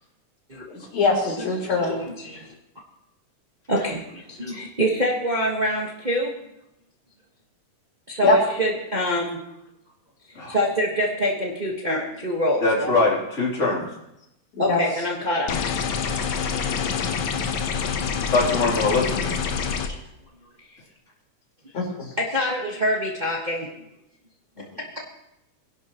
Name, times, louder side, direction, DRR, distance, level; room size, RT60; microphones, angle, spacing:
voice 1, 0.7-2.0 8.2-8.4 14.6-14.8 21.7-22.1, left 3 dB, 55° left, -1 dB, 4.6 m, -23 dB
voice 2, 1.8-2.5 3.7-6.3 8.1-9.4 10.3-13.0 14.6-15.6 20.6-20.8 22.0-23.7 24.6-24.7, equal, 85° right, -2 dB, 0.4 m, -25 dB
voice 3, 12.6-13.8 16.6-16.8 17.3-17.4 18.3-19.4, left 3 dB, 20° left, -5 dB, 3.7 m, -23 dB
sound 1, 15.5-19.9, left 6 dB, 90° left, 1.1 m, -26 dB
23.0 x 11.0 x 3.0 m, 0.84 s
omnidirectional pair, 3.6 m